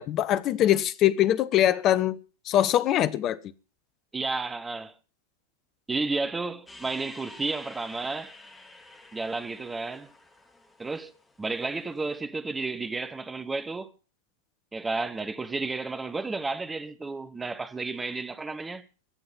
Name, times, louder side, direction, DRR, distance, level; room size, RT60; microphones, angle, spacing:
voice 1, 0.0-2.2 2.5-3.4, left 12 dB, 35° left, 0.9 m, -23 dB
voice 2, 4.1-4.9 5.9-8.3 9.1-10.1 10.8-11.1 11.4-13.9 14.7-18.9, right 3 dB, 10° right, 1.2 m, -32 dB
sound 1, 6.7-12.1, left 2 dB, 10° left, 2.7 m, -50 dB
23.0 x 7.8 x 5.4 m
figure-of-eight pair, 90°, 0 cm